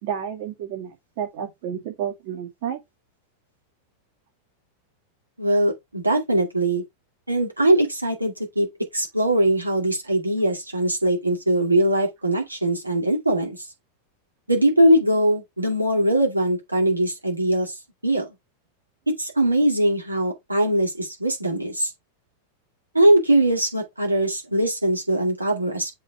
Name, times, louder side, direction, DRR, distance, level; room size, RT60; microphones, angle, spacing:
voice 1, 0.0-2.8, right 8 dB, 50° right, 2.2 m, -31 dB
voice 2, 5.4-6.8 7.3-8.7 8.9-13.6 14.5-17.7 18.0-18.3 19.2-21.9 22.9-25.9, right 1 dB, 85° right, 2.3 m, -21 dB
7.5 x 4.2 x 3.4 m
figure-of-eight pair, 90°, 0 cm